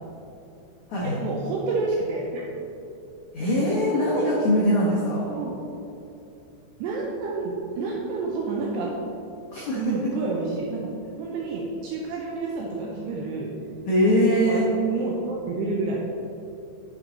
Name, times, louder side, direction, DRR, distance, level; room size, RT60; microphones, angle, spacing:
voice 1, 1.2-2.5 5.3-5.6 6.8-8.9 9.7-13.5 14.0-14.2 14.5-14.6 14.9-16.0, right 3 dB, 80° right, -2 dB, 2.5 m, -29 dB
voice 2, 3.3-5.3 9.5-10.0 13.9-14.7, equal, 80° left, -7 dB, 1.6 m, -22 dB
8.8 x 7.6 x 4.0 m, 2.8 s
omnidirectional pair, 5.7 m